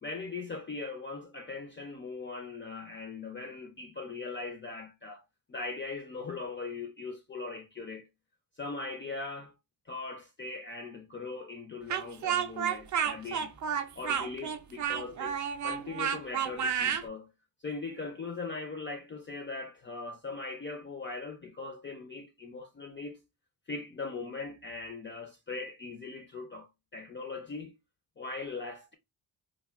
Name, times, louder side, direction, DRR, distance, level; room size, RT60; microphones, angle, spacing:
voice 1, 0.0-5.2 5.5-8.1 8.6-9.5 9.9-13.6 14.0-15.4 15.6-17.3 17.6-23.2 23.7-27.8 28.2-28.9, left 3 dB, 30° left, 0.4 m, -40 dB
Speech, 11.9-17.1, right 8 dB, 45° right, 0.4 m, -31 dB
3.3 x 2.1 x 2.3 m
wide cardioid pair, 120°, 43 cm